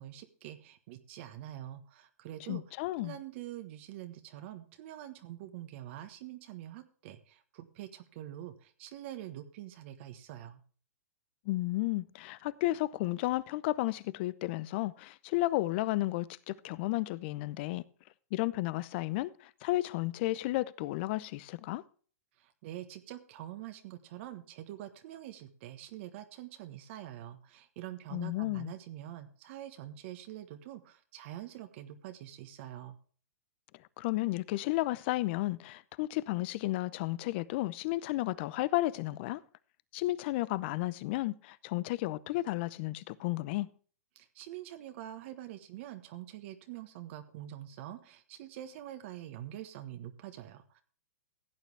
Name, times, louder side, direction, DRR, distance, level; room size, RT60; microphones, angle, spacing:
voice 1, 0.0-10.6 22.4-33.0 44.1-50.8, right 13 dB, 50° right, 1.4 m, -45 dB
voice 2, 2.5-3.2 11.4-17.8 18.3-21.8 28.1-28.7 34.0-39.4 39.9-43.7, left 18 dB, 45° left, 0.7 m, -33 dB
16.0 x 9.1 x 3.4 m
hypercardioid pair, 135°, 8 cm